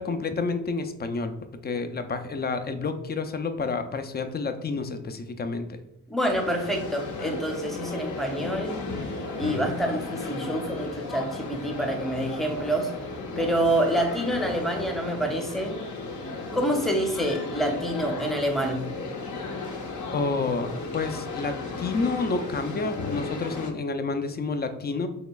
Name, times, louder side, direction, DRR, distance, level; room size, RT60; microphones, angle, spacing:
voice 1, 0.0-1.3 1.6-5.7 20.1-20.7 20.9-25.1, left 4 dB, 25° left, 9 dB, 0.5 m, -29 dB
voice 2, 6.1-8.8 9.4-12.9 13.4-15.8 16.5-18.9, right 1 dB, ahead, 2 dB, 0.8 m, -27 dB
sound 1, 6.2-23.7, left 3 dB, 50° left, 0.9 m, -35 dB
4.7 x 3.1 x 2.3 m, 0.83 s
supercardioid pair, 60°, 39 cm